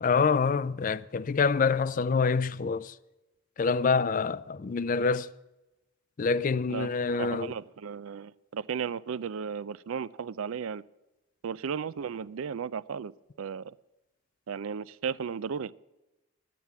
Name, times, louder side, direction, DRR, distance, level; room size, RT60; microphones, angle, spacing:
voice 1, 0.0-2.9 3.6-5.3 6.2-7.5, left 5 dB, 40° left, 0.4 m, -26 dB
voice 2, 7.2-10.8 11.4-13.1 13.4-13.8 14.5-15.7, right 6 dB, 85° right, 0.4 m, -35 dB
12.0 x 9.3 x 7.0 m
head